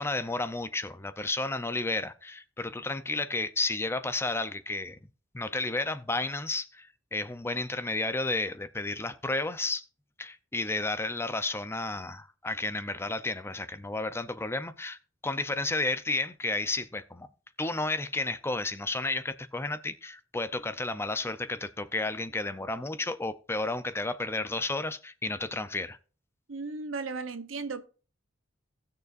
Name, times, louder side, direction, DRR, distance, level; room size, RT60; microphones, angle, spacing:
voice 1, 0.0-5.0 5.3-9.8 10.2-15.0 15.2-17.3 17.6-26.0, left 2 dB, 15° left, 0.5 m, -32 dB
voice 2, 26.5-27.8, right 4 dB, 75° right, 0.8 m, -35 dB
18.0 x 6.7 x 2.5 m
head